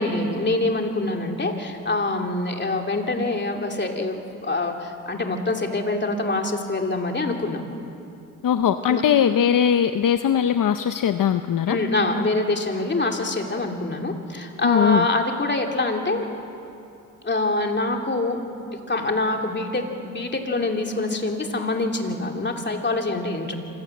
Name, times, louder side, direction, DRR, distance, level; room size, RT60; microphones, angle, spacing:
voice 1, 0.0-7.6 8.9-9.0 11.7-16.2 17.2-18.4 18.7-23.6, left 2 dB, 30° left, 2 dB, 2.9 m, -25 dB
voice 2, 8.4-11.8 14.6-15.1, left 8 dB, 65° left, 9 dB, 0.8 m, -20 dB
26.0 x 17.0 x 7.9 m, 2.9 s
cardioid pair, 80°, 35 cm